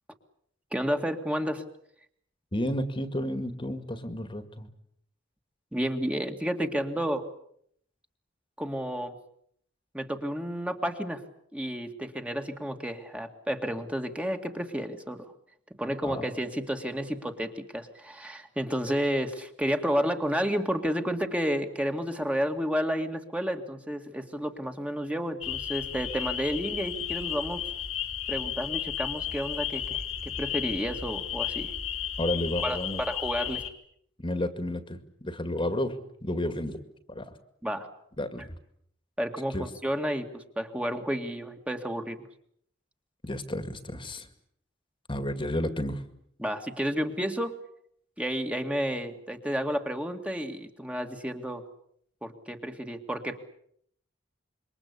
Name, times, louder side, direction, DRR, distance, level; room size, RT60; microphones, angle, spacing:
voice 1, 0.7-1.6 5.7-7.2 8.6-9.1 9.9-11.2 11.5-15.3 15.8-27.6 28.3-30.0 30.4-31.7 32.6-33.6 37.6-37.9 39.2-42.2 46.4-47.5 48.2-51.6 52.2-53.4, equal, 5° right, 5 dB, 2.0 m, -31 dB
voice 2, 2.5-4.7 16.0-16.3 32.2-33.0 34.2-36.0 36.2-36.8 37.1-37.3 38.2-38.5 39.5-39.7 43.2-44.3 45.1-46.0, left 1 dB, 25° left, 10 dB, 2.1 m, -31 dB
sound 1, 25.4-33.7, left 9 dB, 90° left, 3.7 m, -33 dB
27.0 x 24.0 x 8.3 m, 0.69 s
head